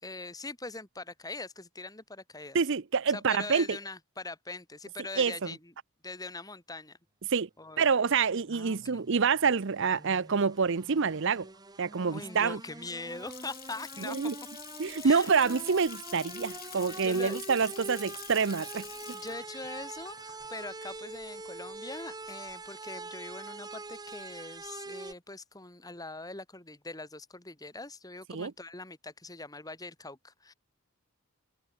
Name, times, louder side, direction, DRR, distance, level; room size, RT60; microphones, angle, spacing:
voice 1, 0.0-2.6 3.1-5.7 6.0-7.0 7.6-7.9 8.5-9.0 12.1-14.2 15.0-15.4 16.9-17.4 19.1-30.5, left 3 dB, 15° left, 2.9 m, -42 dB
voice 2, 2.5-3.8 5.2-5.3 7.3-7.5 7.8-11.5 11.8-12.6 14.1-14.3 14.8-18.8 28.3-28.5, right 5 dB, 60° right, 0.7 m, -27 dB
sound 1, 8.4-25.1, right 2 dB, 20° right, 1.1 m, -44 dB
Water tap faucet / Sink (filling or washing) / Splash splatter, 12.8-21.7, left 12 dB, 45° left, 4.6 m, -47 dB
head